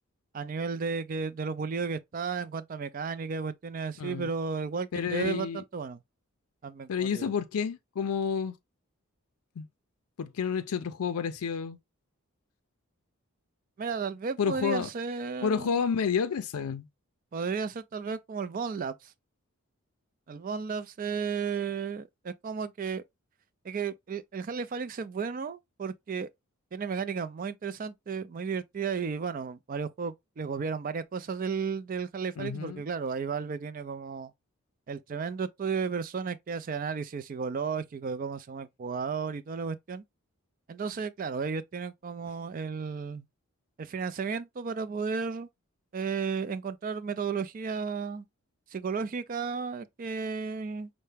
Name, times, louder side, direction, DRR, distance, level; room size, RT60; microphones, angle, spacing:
voice 1, 0.3-6.0 6.6-7.3 13.8-15.9 17.3-19.1 20.3-23.0 23.6-26.3 26.7-34.3 34.9-40.0 40.7-43.3 43.8-45.5 45.9-48.2 48.7-50.9, right 5 dB, 40° right, 0.3 m, -33 dB
voice 2, 4.0-4.3 4.9-5.6 6.9-8.6 9.6-9.7 10.2-11.8 14.4-14.9 15.4-16.9 32.4-32.8, left 6 dB, 90° left, 0.4 m, -30 dB
5.5 x 2.1 x 3.3 m
head